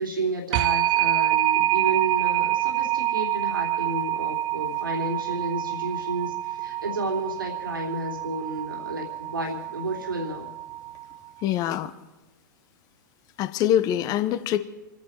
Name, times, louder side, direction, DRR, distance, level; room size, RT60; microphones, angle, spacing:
voice 1, 0.0-10.5, right 2 dB, 85° right, 1 dB, 3.2 m, -31 dB
sound 1, 0.5-11.1, right 14 dB, 40° right, 0.6 m, -27 dB
voice 2, 11.4-11.9 13.4-14.6, left 11 dB, 35° left, 11 dB, 1.2 m, -24 dB
28.0 x 10.5 x 4.6 m, 1.1 s
figure-of-eight pair, 100°, 11 cm